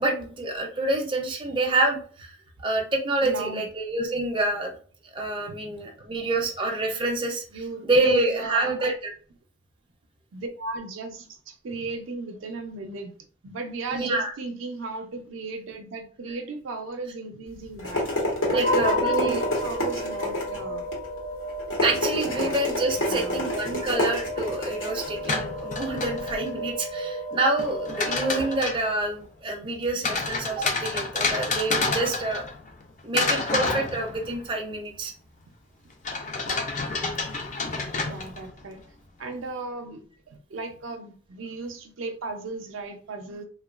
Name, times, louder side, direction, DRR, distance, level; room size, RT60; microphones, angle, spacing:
voice 1, 0.0-2.4 2.6-4.7 5.1-7.4 7.8-8.9 13.9-14.3 18.5-19.4 21.8-32.4 33.0-35.1, right 2 dB, 25° right, 1 dB, 0.4 m, -27 dB
voice 2, 3.2-3.6 5.4-5.9 7.5-8.9 10.3-13.2 13.4-18.1 18.5-20.8 22.3-22.5 23.0-23.4 29.9-30.2 35.5-35.6 38.0-38.8 39.2-40.0 40.3-43.4, right 3 dB, 80° right, 5 dB, 0.5 m, -36 dB
sound 1, 17.5-26.3, left 1 dB, 85° left, 1.1 m, -29 dB
sound 2, 18.6-29.1, equal, 55° left, 1.0 m, -32 dB
sound 3, 25.1-26.6 27.6-28.9 30.0-32.8 33.1-34.5 36.0-38.6, left 3 dB, 40° left, 0.4 m, -29 dB
2.9 x 2.2 x 2.3 m, 0.43 s
head